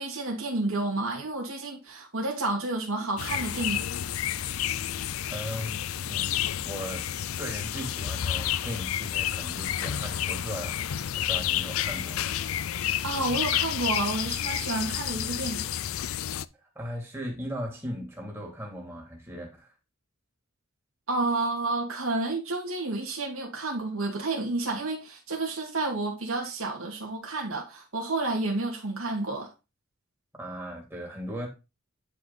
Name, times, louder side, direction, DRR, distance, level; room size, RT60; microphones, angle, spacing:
voice 1, 0.0-3.8 13.0-15.7 21.1-29.5, right 2 dB, 85° right, 2.6 m, -30 dB
sound 1, 3.2-16.4, left 10 dB, 80° left, 0.5 m, -30 dB
voice 2, 5.3-7.0 7.4-10.9 11.3-12.2 16.6-19.7 30.4-31.5, equal, 10° right, 3.0 m, -38 dB
10.0 x 5.0 x 4.2 m
head